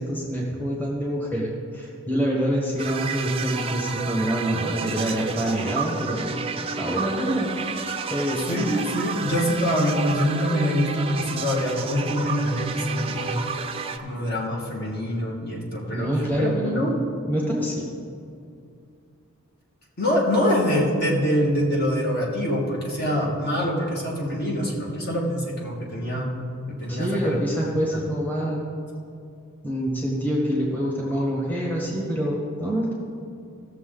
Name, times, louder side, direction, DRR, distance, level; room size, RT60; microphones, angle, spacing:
voice 1, 0.0-6.3 6.8-7.6 8.1-8.6 15.9-16.9 17.3-17.8 26.9-28.6 29.6-32.9, equal, 10° left, -4 dB, 1.4 m, -26 dB
sound 1, 2.8-14.0, right 5 dB, 25° right, 0.5 m, -31 dB
voice 2, 8.5-13.7 14.0-16.1 16.4-17.0 20.0-26.3 26.7-27.4, equal, 45° left, -3 dB, 1.7 m, -25 dB
16.0 x 6.8 x 3.8 m, 2.5 s
head